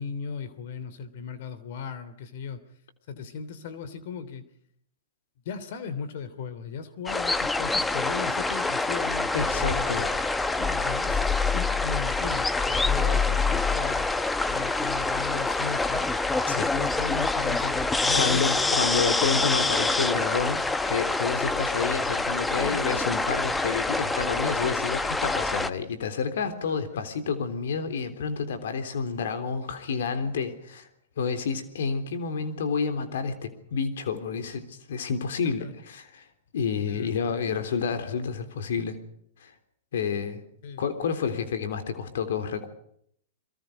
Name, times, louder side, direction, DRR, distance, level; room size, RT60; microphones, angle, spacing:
voice 1, 0.0-2.6 3.1-4.4 5.4-9.3 9.7-10.1 10.6-14.1 14.5-16.1 16.5-19.0 22.6-23.1 26.6-27.0 35.6-35.7 36.9-37.4 40.6-40.8, left 6 dB, 60° left, 14 dB, 3.0 m, -37 dB
sound 1, 7.1-25.7, left 3 dB, 5° left, 1.1 m, -26 dB
voice 2, 9.3-10.1 16.5-16.7 18.1-30.9 31.2-36.3 36.5-39.0 39.4-39.5 39.9-40.4 40.8-42.7, left 5 dB, 75° left, 9 dB, 3.5 m, -29 dB
29.0 x 23.0 x 5.1 m, 0.68 s
hypercardioid pair, 145°, 0 cm